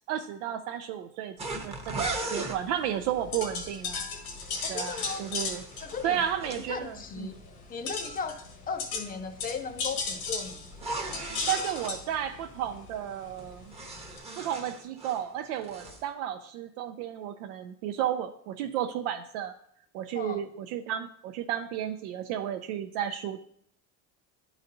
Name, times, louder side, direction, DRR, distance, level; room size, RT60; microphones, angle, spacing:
voice 1, 0.0-1.4 1.6-4.0 4.7-5.6 6.0-7.4 11.5-13.7 14.4-19.5 19.9-23.4, right 10 dB, 70° right, 5 dB, 0.6 m, -33 dB
sound 1, 1.4-2.6 4.2-6.7 10.7-11.9 13.4-15.3 15.6-16.0, right 3 dB, 15° right, 0.9 m, -37 dB
sound 2, 2.4-14.2, left 4 dB, 75° left, 1.4 m, -38 dB
voice 2, 4.6-5.2 5.8-6.2 6.7-7.4 7.7-8.4 8.7-10.6 20.1-20.4, left 5 dB, 20° left, 8 dB, 0.5 m, -36 dB
10.5 x 4.0 x 2.6 m, 0.65 s
supercardioid pair, 120°, 44 cm